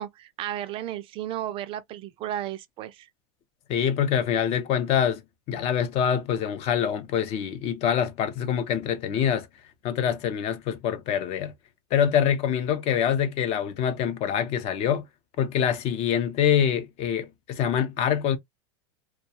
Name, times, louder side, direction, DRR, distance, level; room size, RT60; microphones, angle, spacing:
voice 1, 0.0-3.1, right 12 dB, 40° right, 0.4 m, -34 dB
voice 2, 3.7-5.2 5.5-9.5 9.8-11.5 11.9-15.0 15.4-18.4, left 9 dB, 45° left, 0.6 m, -25 dB
2.3 x 2.2 x 2.8 m
supercardioid pair, 120°, 14 cm